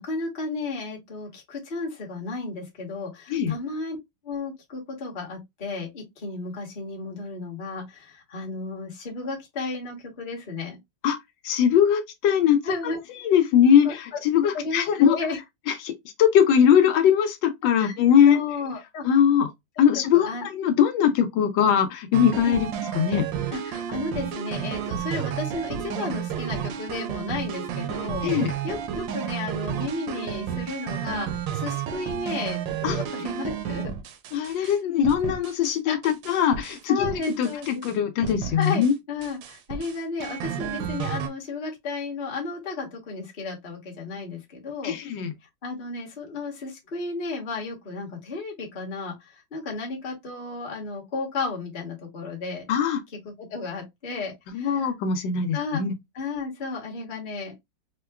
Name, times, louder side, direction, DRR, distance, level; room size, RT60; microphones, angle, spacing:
voice 1, 0.0-4.0 4.2-10.8 12.6-13.0 13.8-14.2 14.5-15.4 17.8-18.0 18.3-19.0 19.8-20.4 22.4-22.6 23.5-28.3 28.6-33.9 34.5-34.7 35.9-36.0 36.9-37.8 38.6-45.0 45.6-52.6 53.1-54.9 55.5-55.8 56.1-57.6, left 3 dB, 35° left, 1.0 m, -33 dB
voice 2, 11.4-12.9 13.2-15.2 15.7-18.4 19.0-19.5 19.8-22.7 22.9-23.2 28.2-28.5 32.8-33.0 34.3-37.1 37.4-38.9 44.8-45.3 52.7-53.0 54.5-55.9, left 8 dB, 85° left, 1.4 m, -21 dB
sound 1, 22.1-34.8 35.0-35.8 36.0-37.9 38.2-38.9 39.2-41.3, right 9 dB, 80° right, 1.3 m, -32 dB
4.4 x 2.2 x 2.3 m
omnidirectional pair, 2.0 m